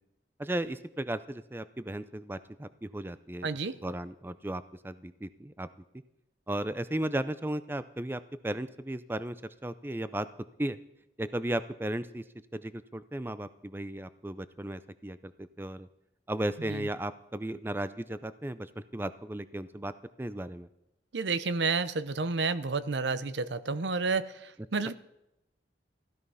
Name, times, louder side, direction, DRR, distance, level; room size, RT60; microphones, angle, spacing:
voice 1, 0.4-3.5 3.8-5.7 6.5-9.4 9.6-10.3 10.6-10.8 11.2-12.2 12.5-15.9 16.3-19.9 20.2-20.7, right 1 dB, 10° right, 14 dB, 0.5 m, -35 dB
voice 2, 3.4-3.8 16.7-16.8 21.1-24.9, right 4 dB, 75° right, 14 dB, 0.7 m, -30 dB
16.0 x 13.0 x 5.6 m, 0.87 s
head